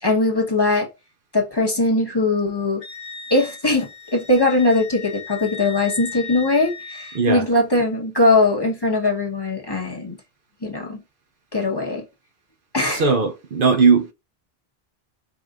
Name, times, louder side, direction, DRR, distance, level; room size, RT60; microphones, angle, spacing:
voice 1, 0.0-0.9 1.3-2.8 3.3-10.2 10.6-11.0 11.5-12.0 12.7-13.1, left 2 dB, 25° left, 1.2 m, -20 dB
Wind instrument woodwind instrument, 2.8-7.3, left 6 dB, 90° left, 1.4 m, -37 dB
voice 2, 7.1-7.5 12.9-14.1, right 5 dB, 60° right, 0.8 m, -18 dB
4.9 x 2.6 x 3.5 m
omnidirectional pair, 1.0 m